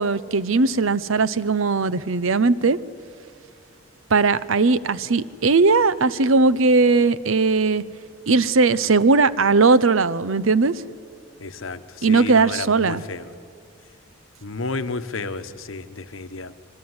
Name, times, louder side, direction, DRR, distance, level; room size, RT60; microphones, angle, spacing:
voice 1, 0.0-2.8 4.1-7.8 8.3-10.8 12.0-13.0, right 4 dB, 80° right, 17 dB, 0.8 m, -18 dB
voice 2, 11.4-13.3 14.4-16.5, left 3 dB, 80° left, 10 dB, 1.2 m, -32 dB
26.0 x 23.5 x 9.7 m, 2.3 s
head